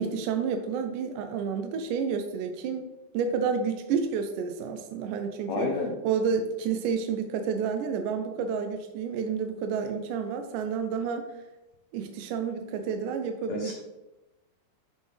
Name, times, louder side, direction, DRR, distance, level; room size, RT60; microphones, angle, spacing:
voice 1, 0.0-2.9 3.1-5.7 6.0-11.3 11.9-13.7, right 6 dB, 80° right, 6 dB, 2.0 m, -30 dB
voice 2, 5.5-5.9 13.5-13.7, left 3 dB, 90° left, 1 dB, 1.5 m, -29 dB
10.5 x 4.2 x 3.3 m, 1.0 s
omnidirectional pair, 4.0 m